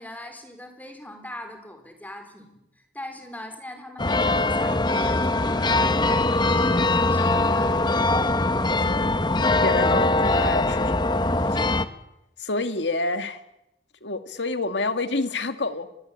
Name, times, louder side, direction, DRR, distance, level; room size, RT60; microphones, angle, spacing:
voice 1, 0.0-7.8, left 1 dB, 10° left, 6 dB, 4.2 m, -41 dB
sound 1, 4.0-11.8, left 2 dB, 25° left, 1.1 m, -22 dB
voice 2, 8.7-9.0 9.6-11.2 11.5-11.8 12.4-13.4 14.0-15.9, left 2 dB, 80° left, 9 dB, 2.0 m, -28 dB
26.0 x 21.0 x 8.5 m, 0.89 s
head